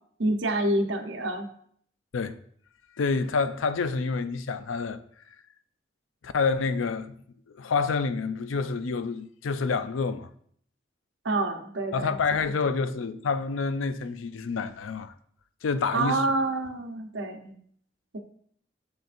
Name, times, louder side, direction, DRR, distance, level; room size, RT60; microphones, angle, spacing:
voice 1, 0.2-1.5 11.2-12.2 15.9-17.6, right 2 dB, 75° right, 0.9 m, -27 dB
voice 2, 3.0-5.0 6.2-7.2 7.5-10.3 11.9-15.1 15.6-16.2, left 4 dB, 90° left, 0.5 m, -28 dB
7.7 x 7.0 x 2.6 m
head